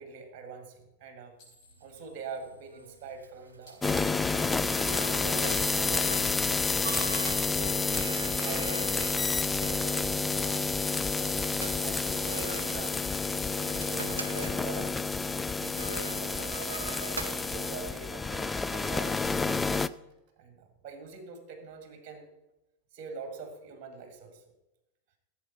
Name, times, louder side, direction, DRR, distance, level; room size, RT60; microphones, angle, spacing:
voice 1, 0.0-1.4 1.8-4.5 5.1-9.1 9.6-10.5 11.1-13.2 13.5-15.0 15.6-16.9 17.4-19.8 20.4-22.3 22.9-24.4, right 4 dB, 40° right, 5 dB, 2.1 m, -44 dB
sound 1, 1.4-4.4 5.3-6.4 6.7-8.6 8.8-10.4 10.7-10.9 11.2-13.1, left 4 dB, 35° left, 5.0 m, -57 dB
sound 2, 1.6-18.9, right 4 dB, 75° right, 0.8 m, -43 dB
sound 3, 3.8-19.9, left 4 dB, 10° left, 0.3 m, -29 dB
16.5 x 7.9 x 4.0 m, 0.96 s
figure-of-eight pair, 90°, 0 cm